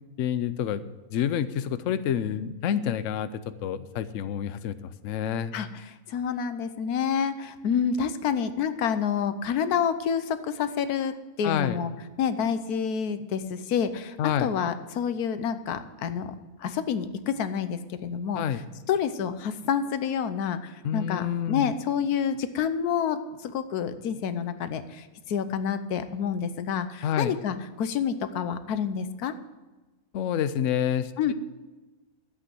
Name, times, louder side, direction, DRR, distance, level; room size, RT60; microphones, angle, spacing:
voice 1, 0.2-5.5 11.4-11.8 14.2-14.5 18.3-18.6 20.8-21.7 27.0-27.3 30.1-31.3, left 9 dB, 65° left, 13 dB, 0.9 m, -28 dB
voice 2, 5.5-11.9 12.2-18.6 18.9-29.3 31.2-31.3, left 7 dB, 90° left, 11 dB, 1.3 m, -28 dB
12.0 x 8.1 x 7.6 m, 1.2 s
omnidirectional pair, 1.6 m